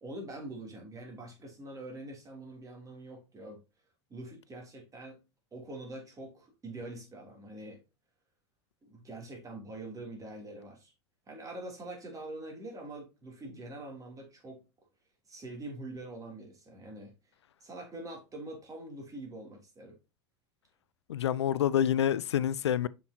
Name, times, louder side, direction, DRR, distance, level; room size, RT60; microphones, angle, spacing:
voice 1, 0.0-3.6 4.1-5.2 5.5-7.8 8.9-10.9 11.3-14.6 15.3-17.1 17.6-20.0, right 2 dB, 25° right, 3.1 m, -44 dB
voice 2, 21.1-22.9, left 10 dB, 75° left, 0.4 m, -27 dB
7.1 x 5.8 x 2.8 m
figure-of-eight pair, 80°, 14 cm